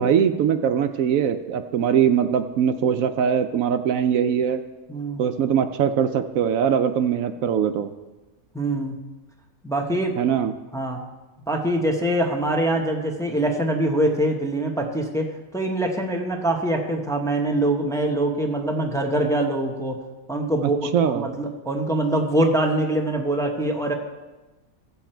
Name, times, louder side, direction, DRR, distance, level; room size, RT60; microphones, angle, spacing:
voice 1, 0.0-4.6 5.2-7.9 10.2-10.5 20.6-21.3, right 8 dB, 75° right, 9 dB, 1.0 m, -21 dB
voice 2, 4.9-5.2 8.5-8.9 9.6-10.2 10.7-11.0 11.5-20.0 20.3-20.8 21.1-23.9, right 1 dB, 5° left, 1 dB, 0.9 m, -24 dB
15.5 x 7.1 x 4.4 m, 1.1 s
omnidirectional pair, 1.5 m